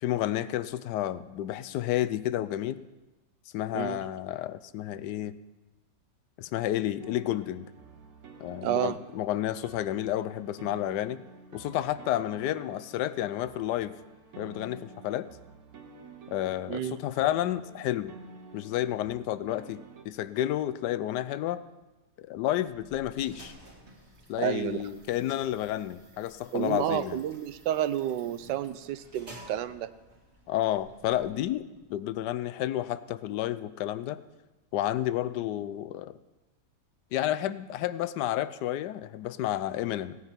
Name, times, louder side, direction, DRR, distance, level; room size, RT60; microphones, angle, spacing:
voice 1, 0.0-2.8 3.5-5.4 6.4-7.7 8.4-11.2 11.5-14.0 14.4-15.3 16.3-18.1 18.5-21.6 22.2-23.5 24.3-27.2 30.5-34.2 34.7-36.1 37.1-40.2, left 13 dB, 75° left, 15 dB, 1.1 m, -31 dB
sound 1, 7.0-20.0, right 3 dB, 55° right, 1.5 m, -50 dB
voice 2, 8.6-9.0 16.7-17.0 24.4-24.9 26.5-29.9, right 11 dB, 80° right, 14 dB, 1.3 m, -30 dB
sound 2, 22.5-31.8, right 1 dB, 35° right, 2.3 m, -53 dB
17.5 x 9.7 x 4.4 m, 1.1 s
omnidirectional pair, 1.9 m